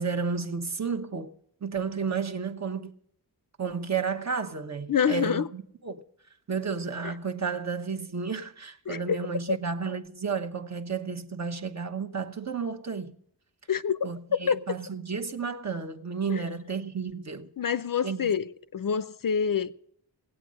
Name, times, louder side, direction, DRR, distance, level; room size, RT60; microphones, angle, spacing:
voice 1, 0.0-1.3 1.6-2.9 3.6-6.0 6.5-13.1 14.0-17.5 18.0-18.2, right 5 dB, 40° right, 1.1 m, -32 dB
voice 2, 4.9-5.5 7.0-7.1 8.9-9.2 9.5-9.6 13.7-14.0 14.3-14.6 16.3-16.4 17.6-18.4 18.7-19.7, left 7 dB, 55° left, 0.6 m, -26 dB
18.0 x 8.6 x 6.3 m
wide cardioid pair, 120°, 41 cm